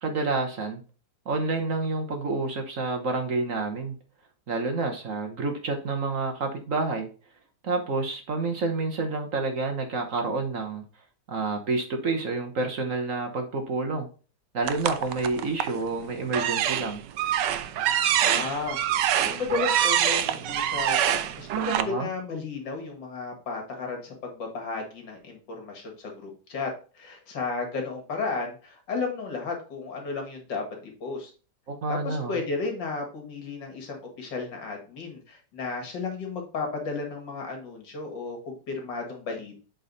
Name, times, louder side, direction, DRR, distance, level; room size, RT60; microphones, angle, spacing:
voice 1, 0.0-0.8 1.3-3.9 4.5-7.1 7.6-10.8 11.3-14.1 14.5-17.0 21.8-22.1 31.7-32.4, right 3 dB, 50° right, 4 dB, 1.3 m, -29 dB
sound 1, 14.6-15.8 16.3-21.8, right 10 dB, 75° right, 1.2 m, -25 dB
voice 2, 18.2-18.8 19.2-30.6 31.0-31.3 31.9-39.6, left 4 dB, 75° left, 2 dB, 2.5 m, -33 dB
7.9 x 3.9 x 4.0 m, 0.36 s
omnidirectional pair, 2.0 m